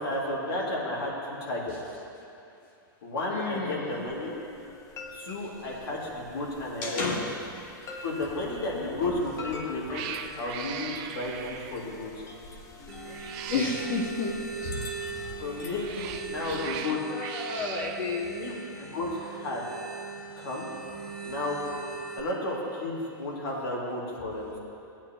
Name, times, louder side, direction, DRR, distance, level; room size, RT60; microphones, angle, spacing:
voice 1, 0.0-1.8 3.0-4.3 5.1-7.1 8.0-10.0 10.3-12.2 15.4-17.0 18.4-19.7 20.4-20.7 21.2-21.6 22.2-24.6, left 2 dB, 85° left, -5 dB, 2.6 m, -32 dB
voice 2, 3.3-4.0 6.8-7.3 8.7-9.1 13.5-14.8 17.1-18.4, left 4 dB, 55° left, -1 dB, 1.2 m, -31 dB
sound 1, 3.9-16.8, left 2 dB, 25° left, 0.9 m, -45 dB
Cat, 9.2-9.5 9.9-11.9 13.0-14.1 15.4-18.0, right 9 dB, 45° right, 0.6 m, -39 dB
sound 2, 12.9-22.2, right 5 dB, 5° left, 1.9 m, -40 dB
16.5 x 8.8 x 3.0 m, 2.7 s
hypercardioid pair, 120°, 12 cm